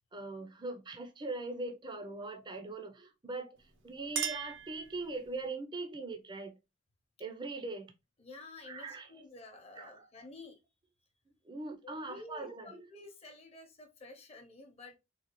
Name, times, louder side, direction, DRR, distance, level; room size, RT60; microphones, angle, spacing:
voice 1, 0.1-3.6 3.8-6.5 7.2-7.9 8.6-9.1 9.8-10.1 11.5-12.9, right 3 dB, 25° right, 0.5 m, -41 dB
Chink clink, 3.6-5.4, right 7 dB, 65° right, 0.7 m, -40 dB
voice 2, 8.2-10.6 11.8-15.0, left 2 dB, 35° left, 0.9 m, -51 dB
3.9 x 2.3 x 3.0 m
head